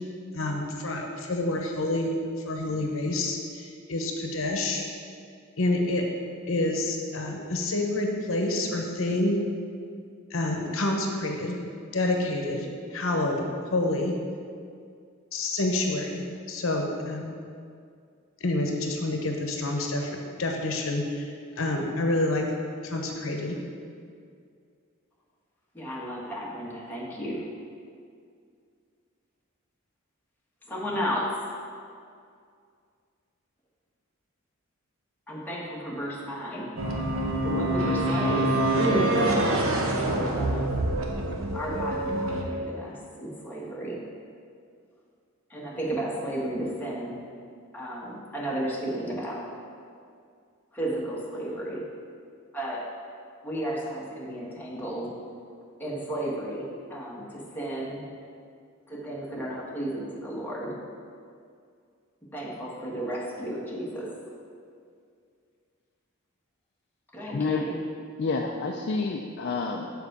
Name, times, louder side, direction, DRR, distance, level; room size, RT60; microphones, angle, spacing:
voice 1, 0.3-2.1 2.4-4.8 5.6-6.0 6.5-9.4 10.3-11.6 11.9-14.1 15.3-17.3 18.4-21.3 21.6-22.4 22.8-23.6, left 2 dB, 70° left, 2 dB, 0.9 m, -28 dB
voice 2, 25.7-27.4 30.7-31.5 35.3-36.7 37.4-38.5 38.8-40.7 41.5-44.0 45.5-47.2 47.7-49.4 50.7-51.8 52.5-52.8 53.4-55.1 55.8-58.0 58.9-60.8 62.3-64.1 67.1-67.8, right 1 dB, 10° left, -5 dB, 1.4 m, -33 dB
sound 1, 36.8-42.4, right 1 dB, 70° right, 1.0 m, -26 dB
voice 3, 67.3-67.7 68.2-69.9, left 4 dB, 50° left, 1 dB, 0.4 m, -29 dB
7.2 x 4.6 x 6.6 m, 2.3 s
head